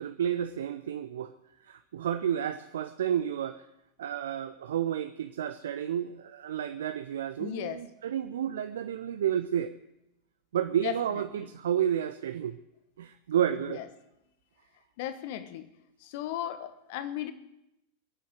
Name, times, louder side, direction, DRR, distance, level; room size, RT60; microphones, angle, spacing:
voice 1, 0.0-1.3 1.6-3.6 4.0-9.7 10.5-12.6 13.0-13.8, right 9 dB, 60° right, 11 dB, 0.6 m, -31 dB
voice 2, 7.4-7.8 10.8-11.5 13.7-13.9 15.0-15.7 16.0-17.3, left 12 dB, 50° left, 11 dB, 1.2 m, -36 dB
23.0 x 7.9 x 6.5 m, 0.86 s
figure-of-eight pair, 90°, 0 cm